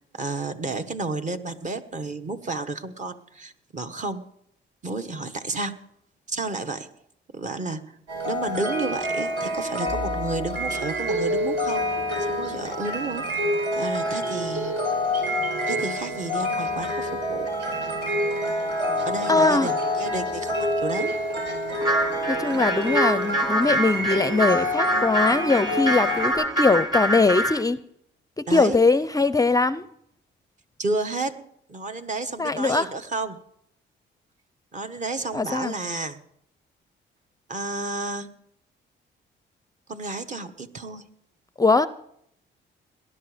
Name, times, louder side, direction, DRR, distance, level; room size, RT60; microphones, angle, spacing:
voice 1, 0.1-4.2 4.8-5.8 6.3-6.9 7.3-8.0 8.2-11.8 12.2-13.4 13.8-14.7 15.6-17.5 19.0-21.1 28.5-28.8 30.8-33.4 34.7-36.2 37.5-38.3 39.9-41.0, right 3 dB, 40° right, 7 dB, 1.3 m, -31 dB
sound 1, 8.1-26.3, equal, 70° right, 5.5 m, -27 dB
voice 2, 19.3-19.7 22.3-27.8 28.4-29.8 32.4-32.9 35.3-35.7 41.6-41.9, left 3 dB, 15° left, 15 dB, 0.5 m, -21 dB
sound 2, 21.8-27.6, right 1 dB, 20° right, 2.4 m, -25 dB
19.5 x 11.0 x 5.0 m, 0.71 s
cardioid pair, 90°, 20 cm